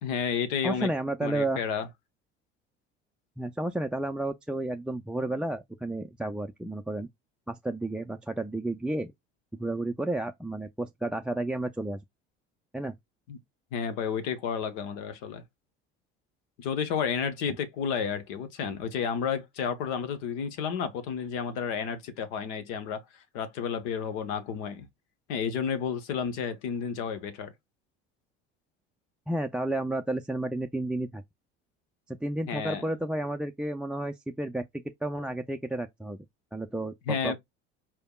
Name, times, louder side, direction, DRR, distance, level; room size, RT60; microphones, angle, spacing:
voice 1, 0.0-0.9 1.2-1.9 13.3-13.4 13.7-15.4 16.6-23.0 23.3-24.9 25.3-27.5 32.5-32.8 37.1-37.4, left 7 dB, 70° left, 1.0 m, -31 dB
voice 2, 0.6-1.6 3.4-7.1 7.5-9.1 9.6-12.0 12.7-12.9 29.3-31.2 32.1-34.6 35.0-36.2 36.5-37.4, right 1 dB, 5° right, 0.3 m, -31 dB
4.6 x 3.4 x 2.3 m
hypercardioid pair, 70°, 34 cm